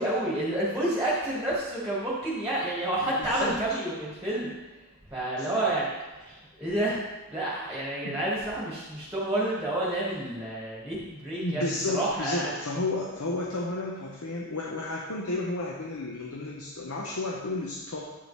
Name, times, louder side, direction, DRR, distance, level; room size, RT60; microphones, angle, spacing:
voice 1, 0.0-4.5 5.1-5.9 6.2-7.0 7.3-12.5, right 1 dB, 5° right, -7 dB, 1.7 m, -29 dB
voice 2, 3.0-3.5 5.4-5.6 8.0-8.2 11.4-18.0, left 2 dB, 75° left, -2 dB, 1.0 m, -32 dB
8.4 x 8.3 x 3.2 m, 1.1 s
head